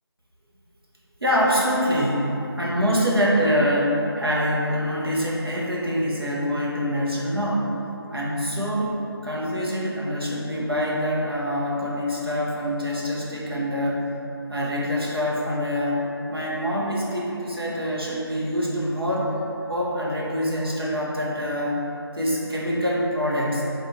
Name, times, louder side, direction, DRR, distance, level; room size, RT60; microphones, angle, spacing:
voice 1, 1.2-7.7 8.1-8.9 9.2-14.0 14.5-16.0 16.3-19.4 19.7-21.8 22.1-23.6, equal, 65° right, -5 dB, 1.0 m, -25 dB
4.1 x 2.6 x 3.9 m, 2.9 s
figure-of-eight pair, 175°, 13 cm